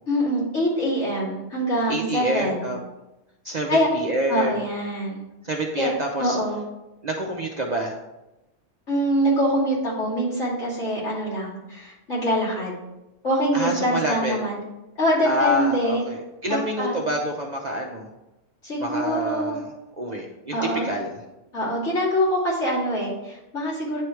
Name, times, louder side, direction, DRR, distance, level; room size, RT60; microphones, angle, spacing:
voice 1, 0.1-2.7 3.7-3.9 4.3-5.2 5.8-5.9 6.2-6.6 8.9-12.7 13.2-14.6 15.0-16.0 16.5-17.0 18.6-19.6 20.5-20.8 21.5-24.0, equal, 65° left, -8 dB, 3.0 m, -24 dB
voice 2, 1.9-2.8 3.4-4.6 5.4-6.4 7.0-8.0 13.5-14.4 15.2-18.1 18.8-19.6 20.0-20.6 20.8-21.2, right 1 dB, 45° right, 0 dB, 0.6 m, -27 dB
9.5 x 3.2 x 4.6 m, 0.97 s
omnidirectional pair, 1.3 m